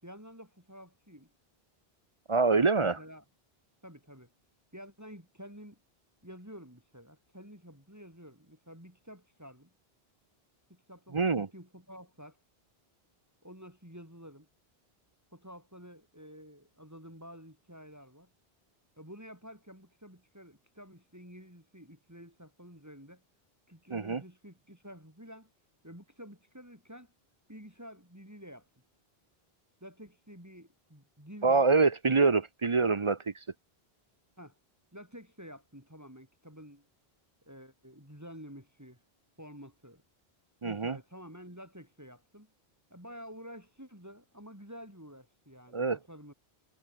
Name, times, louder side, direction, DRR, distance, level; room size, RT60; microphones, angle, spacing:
voice 1, 0.0-1.3 2.8-3.2 3.8-4.3 4.7-5.8 6.2-9.7 10.7-12.4 13.4-14.5 15.3-18.3 19.0-23.2 23.7-25.5 25.8-27.1 27.5-28.7 29.8-31.7 34.4-34.6 34.9-36.9 37.4-39.0 39.4-40.0 40.6-42.5 42.9-46.3, equal, 15° right, 6.2 m, -50 dB
voice 2, 2.3-2.9 11.1-11.5 23.9-24.2 31.4-33.3 40.6-41.0 45.7-46.0, right 4 dB, 35° right, 0.7 m, -25 dB
omnidirectional pair, 1.0 m